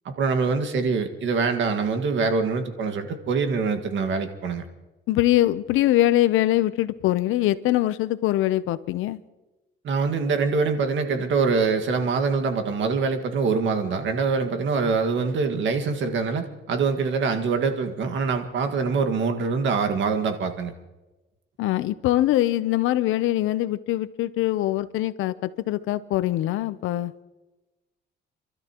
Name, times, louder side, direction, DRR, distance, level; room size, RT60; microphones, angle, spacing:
voice 1, 0.1-4.6 9.8-20.7, right 4 dB, 70° right, 1.8 m, -24 dB
voice 2, 5.1-9.2 21.6-27.1, left 14 dB, 90° left, 0.7 m, -23 dB
30.0 x 13.0 x 3.0 m
cardioid pair, 90°, 20 cm